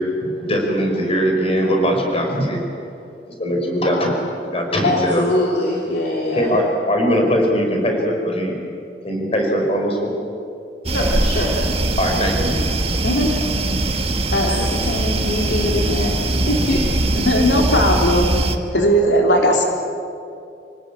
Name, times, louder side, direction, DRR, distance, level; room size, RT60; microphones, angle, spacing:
voice 1, 0.0-2.6 3.4-5.3 6.3-8.6 9.0-10.1 12.0-12.6, equal, 35° left, 1 dB, 5.1 m, -20 dB
voice 2, 4.8-6.6 10.9-11.5 13.0-13.3 14.3-16.1 16.5-16.8, left 1 dB, 65° left, -2 dB, 2.9 m, -22 dB
sound 1, 10.8-18.6, right 2 dB, 35° right, 1.5 m, -21 dB
voice 3, 17.1-18.3 18.7-19.6, equal, 90° left, 0 dB, 3.8 m, -16 dB
27.5 x 19.0 x 8.8 m, 2.6 s
head